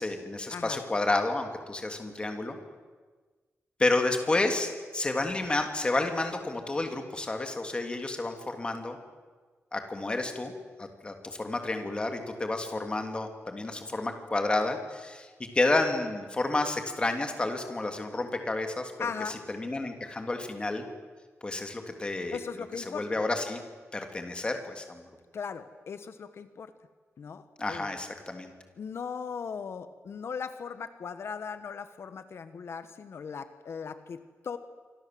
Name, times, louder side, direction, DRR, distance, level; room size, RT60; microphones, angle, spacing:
voice 1, 0.0-2.6 3.8-9.0 9.7-10.5 10.8-15.3 15.5-18.9 19.3-20.8 21.4-22.4 22.8-23.6 23.9-25.1 27.6-28.5, left 2 dB, 20° left, 5 dB, 3.1 m, -30 dB
voice 2, 19.0-19.4 22.3-23.0 25.3-26.7 27.2-27.9 28.8-34.6, left 6 dB, 60° left, 11 dB, 1.3 m, -38 dB
27.0 x 25.5 x 7.8 m, 1.4 s
wide cardioid pair, 180°, 5 cm